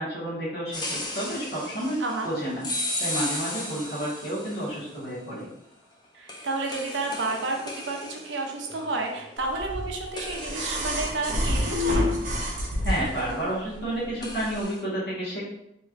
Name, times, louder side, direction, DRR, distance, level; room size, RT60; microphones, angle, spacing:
voice 1, 0.0-2.7 3.0-5.5 12.8-15.4, right 1 dB, 60° left, -8 dB, 1.3 m, -30 dB
sound 1, 0.7-5.0 6.3-9.8 10.2-12.5 12.9-13.4 14.2-14.8, left 1 dB, 25° left, 0.5 m, -36 dB
voice 2, 2.0-2.3 6.1-12.1, right 3 dB, 85° right, 2 dB, 0.6 m, -31 dB
sound 2, 9.6-13.3 14.6-14.7, left 1 dB, 45° right, 0.7 m, -27 dB
3.2 x 3.0 x 2.4 m, 0.82 s
head